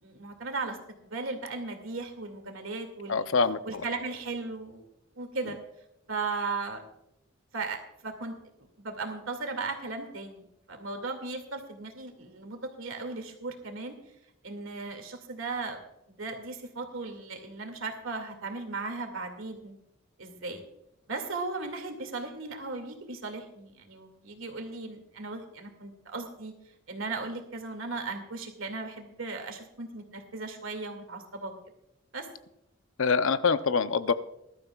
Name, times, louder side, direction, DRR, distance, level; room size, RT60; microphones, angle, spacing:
voice 1, 0.0-0.8 1.0-3.3 3.6-4.8 5.2-5.6 6.1-6.9 7.5-8.3 8.8-10.4 10.7-13.9 14.4-15.8 16.1-19.8 20.2-20.6 21.1-26.5 26.9-31.5 32.1-32.3, right 3 dB, 80° right, 4 dB, 2.3 m, -36 dB
voice 2, 3.1-3.8 33.0-34.1, left 5 dB, 80° left, 12 dB, 0.7 m, -25 dB
20.5 x 12.5 x 2.4 m, 0.84 s
head